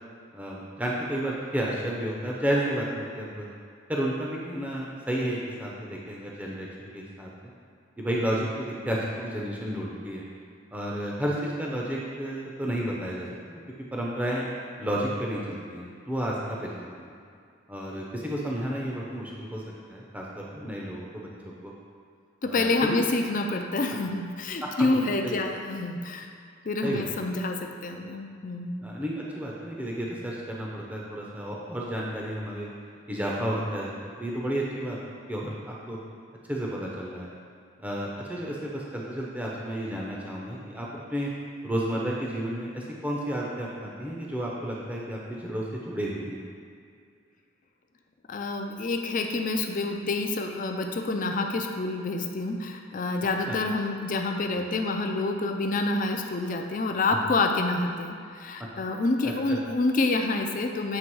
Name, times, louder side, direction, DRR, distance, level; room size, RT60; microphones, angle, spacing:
voice 1, 0.3-3.5 3.9-7.3 8.0-10.2 10.7-13.3 13.9-14.4 14.8-17.2 17.7-19.6 19.9-21.7 22.4-23.0 24.8-25.4 26.8-27.1 28.8-32.7 33.1-35.0 35.3-36.0 36.5-37.3 37.8-41.3 41.6-46.4 53.5-53.6 54.5-54.6 57.1-57.2 59.5-59.6, right 1 dB, 10° right, -4 dB, 0.6 m, -32 dB
voice 2, 22.4-26.3 26.6-28.8 48.3-61.0, left 2 dB, 45° left, 4 dB, 0.5 m, -28 dB
7.6 x 3.4 x 4.6 m, 2.3 s
head